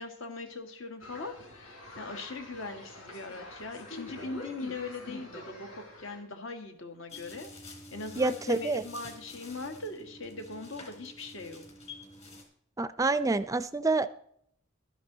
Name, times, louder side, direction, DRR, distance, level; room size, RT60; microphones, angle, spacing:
voice 1, 0.0-11.6, left 3 dB, 65° left, 6 dB, 1.7 m, -41 dB
sound 1, 1.0-6.2, left 2 dB, 90° left, 4.5 m, -46 dB
sound 2, 7.1-12.4, left 2 dB, 30° left, 3.0 m, -48 dB
voice 2, 8.2-8.8 12.8-14.1, right 3 dB, 15° right, 14 dB, 0.4 m, -27 dB
12.5 x 10.0 x 4.0 m, 0.68 s
head